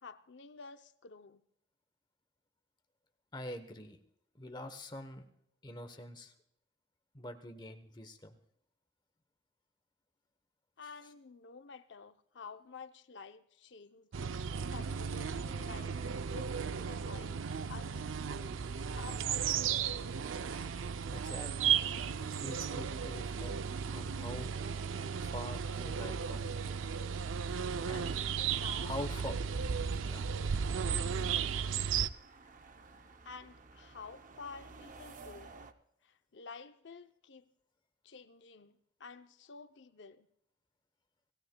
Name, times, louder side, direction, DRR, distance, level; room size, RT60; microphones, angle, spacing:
voice 1, 0.0-1.4 10.8-14.1 14.7-16.0 16.3-18.1 18.9-20.2 28.3-28.9 33.3-35.5 36.0-37.4 38.0-40.3, left 4 dB, 65° left, 9 dB, 0.6 m, -51 dB
voice 2, 3.3-4.0 4.3-5.3 5.6-6.3 7.1-8.4 11.0-11.1 21.1-21.7 22.2-23.5 23.9-24.5 25.2-26.5 27.9-28.2 28.7-29.3 30.0-30.3, left 1 dB, 20° left, 7 dB, 1.0 m, -45 dB
sound 1, 14.1-32.1, right 7 dB, 80° right, 0.5 m, -35 dB
sound 2, 28.9-35.7, right 3 dB, 40° right, 0.7 m, -56 dB
26.5 x 16.5 x 2.3 m, 0.77 s
head